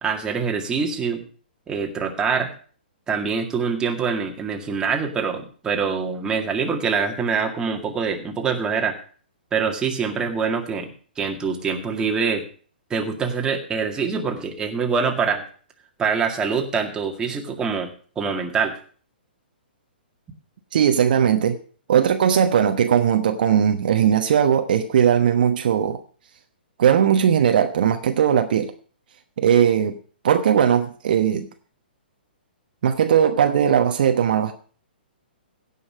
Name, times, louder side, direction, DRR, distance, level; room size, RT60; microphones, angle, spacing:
voice 1, 0.0-1.2 1.7-2.5 3.1-9.0 9.5-10.9 11.2-12.5 12.9-15.5 16.0-18.7, right 5 dB, 15° right, 2 dB, 2.0 m, -24 dB
voice 2, 20.7-21.6 21.9-26.0 26.8-28.7 29.4-30.0 30.2-31.5 32.8-34.5, right 8 dB, 55° right, 7 dB, 1.1 m, -18 dB
16.5 x 5.7 x 6.3 m, 0.41 s
figure-of-eight pair, 120°, 6 cm